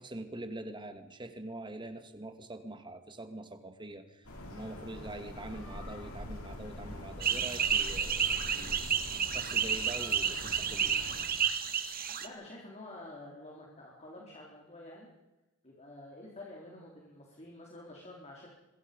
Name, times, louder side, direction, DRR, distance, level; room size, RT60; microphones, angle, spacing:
voice 1, 0.0-8.9 9.3-11.0, right 1 dB, 20° right, 8 dB, 2.1 m, -44 dB
sound 1, 4.2-11.3, left 1 dB, 80° left, 6.7 m, -44 dB
sound 2, 7.2-12.3, right 7 dB, 40° right, 1.9 m, -31 dB
voice 2, 12.2-15.1 15.6-18.5, left 1 dB, 30° left, -2 dB, 4.2 m, -49 dB
26.5 x 22.0 x 5.4 m, 1.0 s
head